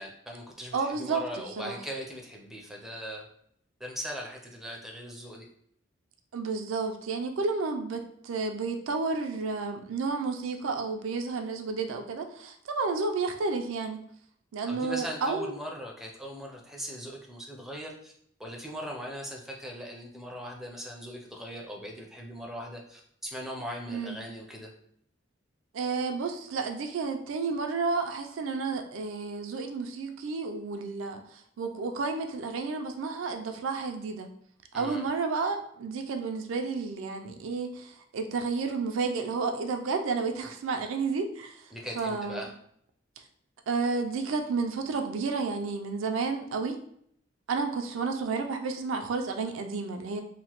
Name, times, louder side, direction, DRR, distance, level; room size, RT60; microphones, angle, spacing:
voice 1, 0.0-3.2 3.8-5.4 14.7-18.1 18.4-24.7 34.7-35.0 41.7-42.5, equal, ahead, 0 dB, 0.4 m, -39 dB
voice 2, 0.7-1.2 1.6-1.8 6.3-14.0 14.5-15.5 23.9-24.2 25.7-34.3 34.7-41.7 42.0-42.4 43.7-46.8 47.5-50.2, right 4 dB, 80° right, 5 dB, 0.4 m, -31 dB
2.9 x 2.1 x 2.9 m, 0.68 s
head